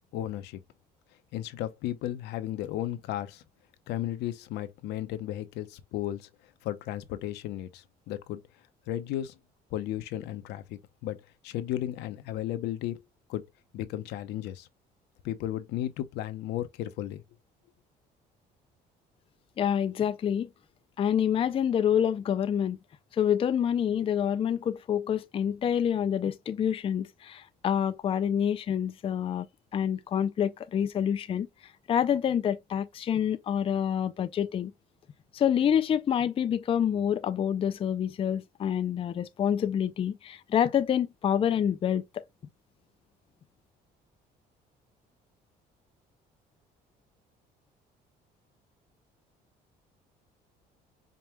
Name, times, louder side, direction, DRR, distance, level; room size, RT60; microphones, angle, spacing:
voice 1, 0.1-0.6 1.3-3.4 3.9-6.3 6.6-8.4 8.9-9.3 9.7-11.2 11.4-13.0 13.3-13.4 13.7-14.7 15.2-17.2, left 13 dB, 85° left, 0.7 m, -34 dB
voice 2, 19.6-20.5 21.0-22.8 23.1-29.5 29.7-31.5 31.9-34.7 35.3-42.2, left 9 dB, 35° left, 0.4 m, -27 dB
5.2 x 2.2 x 3.0 m
cardioid pair, 110°, 17 cm